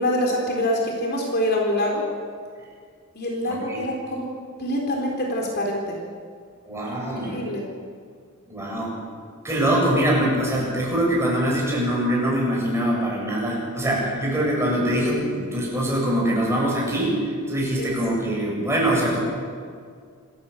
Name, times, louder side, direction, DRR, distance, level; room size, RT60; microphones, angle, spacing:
voice 1, 0.0-2.0 3.1-4.3 4.6-6.0 7.2-7.7 17.8-17.9, left 1 dB, 45° left, 0 dB, 3.8 m, -25 dB
voice 2, 3.5-3.8 6.7-7.4 8.5-8.9 9.4-19.2, right 1 dB, 10° right, -4 dB, 7.7 m, -23 dB
27.0 x 14.5 x 8.4 m, 2.1 s
head